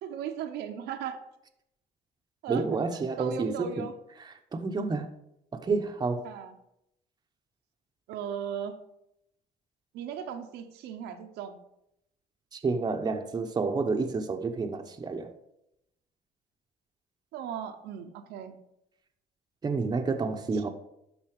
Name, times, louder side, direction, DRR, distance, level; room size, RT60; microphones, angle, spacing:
voice 1, 0.0-1.2 2.4-2.6 3.2-3.9 6.2-6.5 8.1-8.8 9.9-11.6 17.3-18.6, right 8 dB, 85° right, 0.9 m, -37 dB
voice 2, 2.5-3.9 4.5-5.1 5.5-6.3 12.5-15.3 19.6-20.7, right 4 dB, 25° right, 0.8 m, -29 dB
11.5 x 4.1 x 4.8 m
cardioid pair, 110°, 17 cm